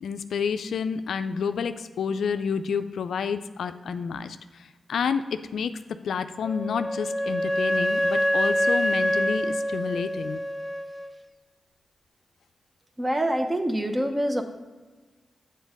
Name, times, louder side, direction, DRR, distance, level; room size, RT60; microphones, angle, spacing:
voice 1, 0.0-5.8 6.0-10.4, left 6 dB, 80° left, 10 dB, 0.3 m, -29 dB
Wind instrument woodwind instrument, 6.4-11.1, equal, 5° right, 0.6 m, -26 dB
voice 2, 13.0-14.4, right 1 dB, 25° right, 6 dB, 0.9 m, -25 dB
7.2 x 4.1 x 5.2 m, 1.3 s
supercardioid pair, 40°, 0 cm